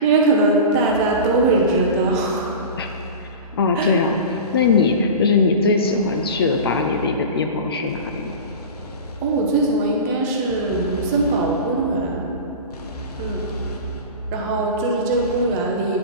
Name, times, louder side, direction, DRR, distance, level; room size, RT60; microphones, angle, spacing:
voice 1, 0.0-2.6 3.4-3.5 3.7-3.9 9.2-12.3 13.2-13.5 14.3-16.0, right 2 dB, 20° right, 0 dB, 0.7 m, -20 dB
sound 1, 0.9-15.5, right 1 dB, 75° left, 0.9 m, -35 dB
voice 2, 3.2-4.1 4.5-8.3, left 4 dB, 40° left, 4 dB, 0.4 m, -20 dB
9.5 x 4.1 x 4.2 m, 2.9 s
figure-of-eight pair, 140°, 20 cm